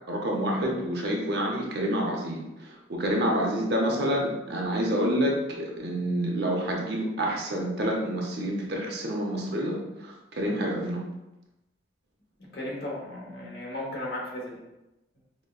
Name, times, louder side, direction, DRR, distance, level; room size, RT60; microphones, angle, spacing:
voice 1, 0.1-11.0, equal, 60° right, -1 dB, 0.6 m, -28 dB
voice 2, 12.5-14.6, left 1 dB, 55° left, -3 dB, 0.9 m, -35 dB
5.0 x 2.2 x 2.3 m, 0.96 s
head